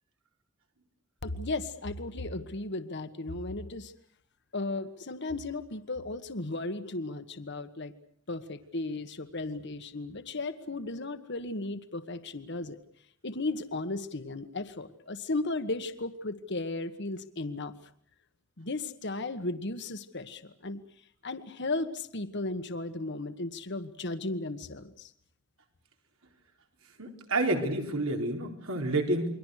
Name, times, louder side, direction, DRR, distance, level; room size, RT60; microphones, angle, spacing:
voice 1, 1.2-3.9 4.5-7.9 8.3-12.8 13.2-17.7 18.6-20.8 21.2-25.1, left 2 dB, 55° left, 10 dB, 1.5 m, -35 dB
voice 2, 27.0-29.3, right 2 dB, 80° right, 3 dB, 4.3 m, -29 dB
29.0 x 23.0 x 6.5 m, 0.63 s
head